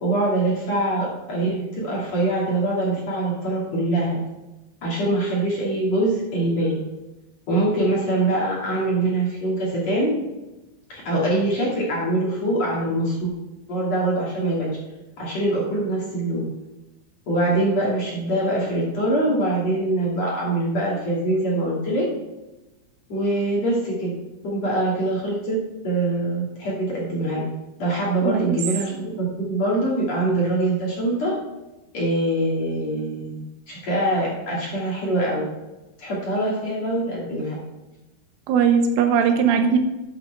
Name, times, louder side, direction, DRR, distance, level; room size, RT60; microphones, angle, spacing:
voice 1, 0.0-4.2 4.8-6.8 7.5-10.1 10.9-13.3 13.7-14.8 15.2-16.5 17.3-22.1 23.1-24.1 24.4-25.6 25.8-27.4 27.8-31.3 31.9-35.4 36.0-37.6, right 1 dB, 45° left, -5 dB, 2.9 m, -23 dB
voice 2, 28.2-28.6 38.5-39.8, right 7 dB, 90° right, 5 dB, 3.6 m, -19 dB
12.5 x 8.6 x 3.4 m, 1.0 s
omnidirectional pair, 5.5 m